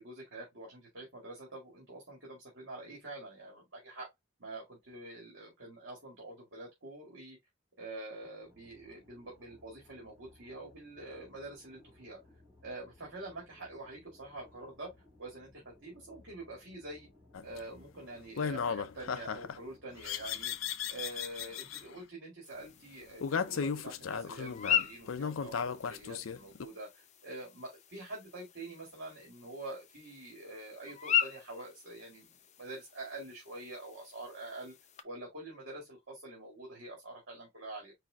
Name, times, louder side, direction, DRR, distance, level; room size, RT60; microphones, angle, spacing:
voice 1, 0.0-4.1 4.4-7.4 7.8-12.2 12.6-14.9 15.2-17.1 17.4-20.5 20.9-34.7 35.0-37.9, right 2 dB, 65° right, 2.2 m, -46 dB
sound 1, 8.4-20.6, left 1 dB, 10° right, 3.1 m, -62 dB
sound 2, 17.3-17.6 18.4-19.6 20.0-21.8 23.2-26.7, left 6 dB, 85° left, 0.5 m, -36 dB
sound 3, 22.4-35.0, left 9 dB, 35° left, 0.6 m, -39 dB
4.8 x 4.4 x 2.3 m
head